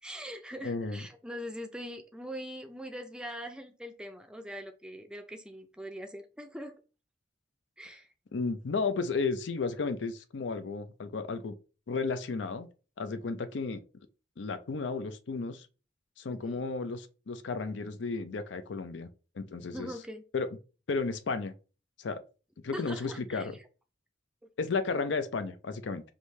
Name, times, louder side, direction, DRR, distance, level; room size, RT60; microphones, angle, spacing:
voice 1, 0.0-6.7 7.8-8.1 16.3-16.7 19.7-20.2 22.7-23.5 24.4-24.5, equal, 5° right, 0.4 m, -42 dB
voice 2, 0.6-1.1 8.3-11.5 11.9-12.7 13.0-13.8 14.4-15.7 16.2-19.1 19.4-19.9 20.3-20.5 20.9-21.5 22.0-22.2 22.6-23.5 24.6-26.0, left 4 dB, 75° left, 0.5 m, -33 dB
4.9 x 2.7 x 3.1 m
head